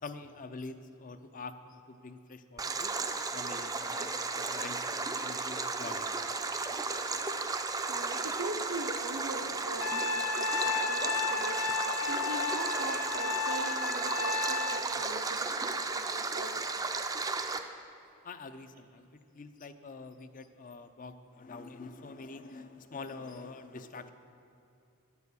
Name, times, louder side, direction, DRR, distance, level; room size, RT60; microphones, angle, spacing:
voice 1, 0.0-2.9 3.3-7.6 18.2-24.1, left 3 dB, 40° left, 10 dB, 0.5 m, -46 dB
Stream, 2.6-17.6, right 3 dB, 15° right, 0.4 m, -34 dB
voice 2, 7.3-16.6, right 2 dB, 75° right, 1 dB, 0.7 m, -42 dB
Trumpet, 9.8-14.9, left 4 dB, 80° left, 0.7 m, -33 dB
9.9 x 7.0 x 8.2 m, 2.6 s
head